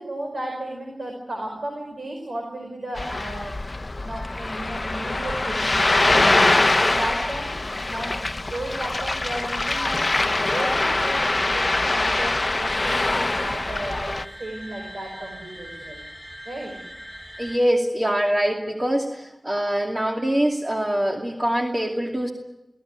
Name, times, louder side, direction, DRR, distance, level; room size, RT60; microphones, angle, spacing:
voice 1, 0.0-3.6 4.0-6.5 6.8-10.1 10.4-16.0 16.4-16.8, right 1 dB, 85° right, 2 dB, 5.1 m, -34 dB
Ocean, 3.0-14.3, left 2 dB, 45° left, 0.9 m, -23 dB
High Drone, 8.6-17.6, equal, ahead, 6.7 m, -42 dB
voice 2, 17.4-22.3, equal, 30° right, 1 dB, 2.6 m, -24 dB
25.0 x 16.5 x 9.6 m, 0.95 s
wide cardioid pair, 55°, 0 cm